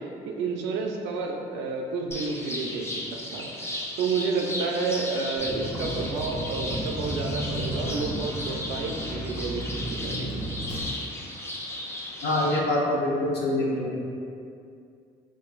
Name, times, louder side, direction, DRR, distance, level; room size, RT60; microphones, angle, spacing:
voice 1, 0.0-9.6 10.0-10.5, right 4 dB, 80° right, 1 dB, 0.4 m, -30 dB
sound 1, 2.1-12.6, left 1 dB, 15° left, 0.6 m, -35 dB
Vehicle, 5.4-10.8, equal, 45° left, 1.2 m, -34 dB
voice 2, 12.2-13.9, left 1 dB, 65° left, -4 dB, 0.8 m, -25 dB
3.9 x 2.4 x 2.4 m, 2.4 s
supercardioid pair, 55°, 18 cm